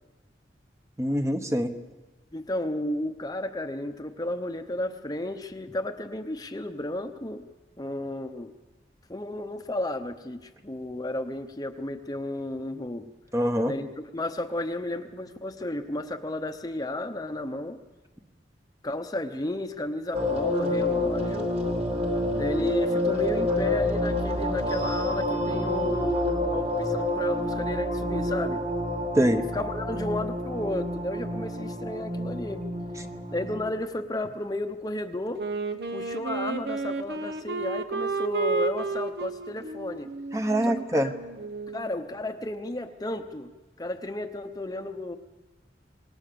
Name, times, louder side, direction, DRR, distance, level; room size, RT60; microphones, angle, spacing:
voice 1, 1.0-1.7 13.3-13.7 29.1-29.4 40.3-41.1, equal, 15° right, 6 dB, 1.1 m, -24 dB
voice 2, 2.3-7.5 7.8-8.5 9.1-13.1 13.7-17.8 18.8-21.5 22.3-28.6 29.4-32.7 33.3-35.4 35.9-40.1 40.6-41.1 41.7-43.5 43.8-45.2, left 1 dB, 20° left, 6 dB, 0.9 m, -33 dB
sound 1, 20.1-33.7, left 1 dB, 35° right, 2.6 m, -28 dB
Wind instrument woodwind instrument, 35.4-41.9, right 3 dB, 65° right, 1.1 m, -32 dB
25.5 x 19.5 x 6.9 m, 1.2 s
head